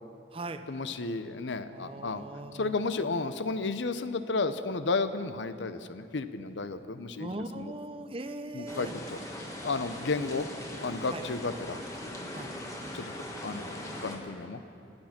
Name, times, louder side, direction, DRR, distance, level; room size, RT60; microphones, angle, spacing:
voice 1, 0.7-2.2 2.5-7.7 8.5-9.2 9.6-10.5 10.7-11.8 12.9-13.2 13.4-14.6, left 3 dB, 70° left, 11 dB, 0.7 m, -33 dB
voice 2, 1.7-2.7 7.2-8.9 11.1-11.2 12.3-12.5, right 2 dB, 30° right, 8 dB, 0.7 m, -39 dB
sound 1, 8.7-14.2, left 1 dB, 15° left, 1.5 m, -40 dB
25.5 x 8.9 x 5.9 m, 2.7 s
head